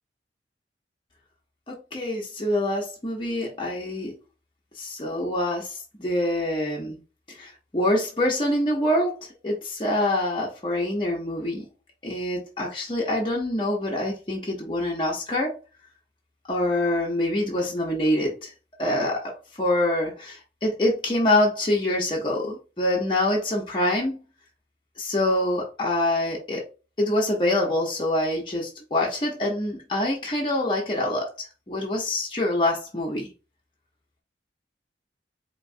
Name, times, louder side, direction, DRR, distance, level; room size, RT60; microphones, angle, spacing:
voice 1, 1.7-4.1 4.8-7.0 7.4-11.6 12.0-15.6 16.5-18.5 18.8-19.3 19.6-24.2 25.0-26.6 27.0-33.3, left 1 dB, 30° left, 0.9 m, -25 dB
4.5 x 3.0 x 2.7 m
head